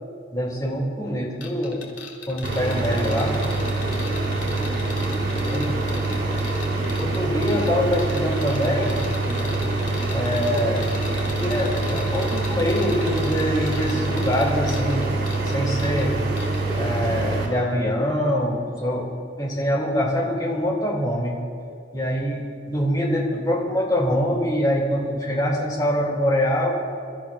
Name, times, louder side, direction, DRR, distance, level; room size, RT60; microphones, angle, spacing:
voice 1, 0.3-1.9 2.3-3.4 5.5-5.7 7.0-8.9 10.1-10.9 11.3-15.3 15.5-16.2 16.8-21.4 21.9-26.8, equal, 20° left, -1 dB, 2.3 m, -24 dB
sound 1, 1.4-16.1 16.4-16.6, left 4 dB, 90° left, 2.5 m, -39 dB
sound 2, 2.4-17.5, right 2 dB, 65° right, 3.5 m, -25 dB
27.5 x 13.5 x 2.3 m, 2.3 s
head